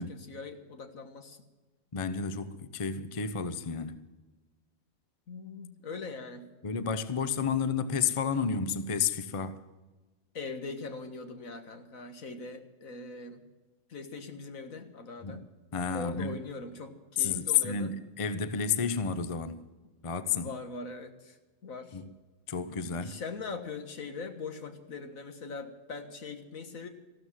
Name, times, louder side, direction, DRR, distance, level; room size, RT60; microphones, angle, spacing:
voice 1, 0.0-1.4 5.3-6.5 10.3-13.4 13.9-15.5 15.9-18.0 20.3-21.4 21.6-22.0 23.0-26.9, left 4 dB, 70° left, 1.9 m, -41 dB
voice 2, 1.9-4.0 6.6-9.6 15.2-15.4 15.7-16.4 17.2-19.6 20.0-20.5 21.9-22.1 22.5-23.2, left 6 dB, 30° left, 0.6 m, -31 dB
15.0 x 13.0 x 7.4 m
omnidirectional pair, 1.5 m